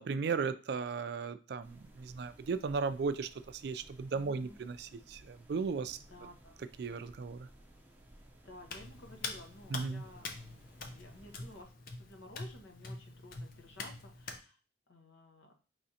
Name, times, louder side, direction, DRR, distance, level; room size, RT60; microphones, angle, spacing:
voice 1, 0.0-6.0 6.8-7.5 9.7-10.0, right 5 dB, 55° right, 11 dB, 0.3 m, -36 dB
sound 1, 1.6-11.6, right 1 dB, 10° right, 0.6 m, -59 dB
voice 2, 4.1-4.6 6.0-6.7 8.4-10.3 10.9-11.7 12.0-14.6 14.9-15.5, left 1 dB, 80° left, 3 dB, 0.9 m, -54 dB
Hands, 8.7-14.4, left 3 dB, 50° left, 0.6 m, -45 dB
5.0 x 3.2 x 2.8 m, 0.35 s
head